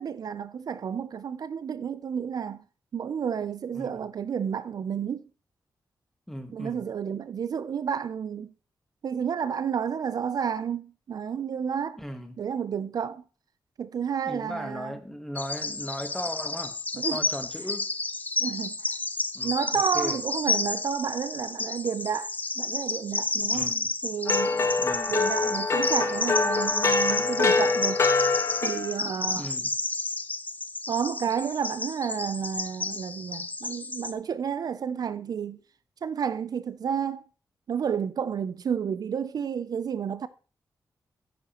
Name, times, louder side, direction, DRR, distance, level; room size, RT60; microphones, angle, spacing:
voice 1, 0.0-2.6 2.9-5.3 6.5-8.5 9.0-12.0 12.4-13.2 13.8-14.9 17.0-17.2 18.4-18.9 19.4-23.7 24.0-24.7 25.1-28.1 28.6-29.5 30.9-35.6 36.0-37.2 37.7-40.3, right 7 dB, 60° right, 0.4 m, -31 dB
voice 2, 6.3-6.9 12.0-12.4 14.2-17.9 19.3-20.2 23.5-23.9 24.8-25.1 29.3-29.7, equal, 5° left, 1.2 m, -37 dB
Bird vocalization bird call bird song, 15.4-34.1, left 3 dB, 20° left, 0.6 m, -31 dB
sound 1, 24.3-29.0, left 3 dB, 40° left, 1.2 m, -25 dB
10.0 x 9.6 x 2.9 m
wide cardioid pair, 140°, 7 cm